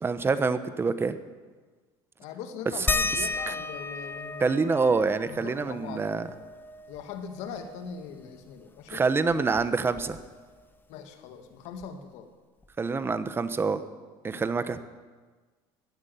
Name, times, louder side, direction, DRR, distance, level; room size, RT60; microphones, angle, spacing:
voice 1, 0.0-1.2 3.5-3.6 4.4-6.3 8.9-10.2 12.8-13.8 14.2-14.8, right 4 dB, 20° right, 12 dB, 0.9 m, -26 dB
voice 2, 2.2-4.6 5.3-6.2 6.9-9.0 10.9-12.3 14.3-14.4, left 6 dB, 75° left, 7 dB, 2.0 m, -41 dB
sound 1, 2.9-8.0 8.4-8.5 8.8-10.5 11.8-11.9 12.6-12.7, left 3 dB, 15° left, 0.9 m, -34 dB
15.0 x 9.7 x 9.4 m, 1.4 s
cardioid pair, 125°, 12 cm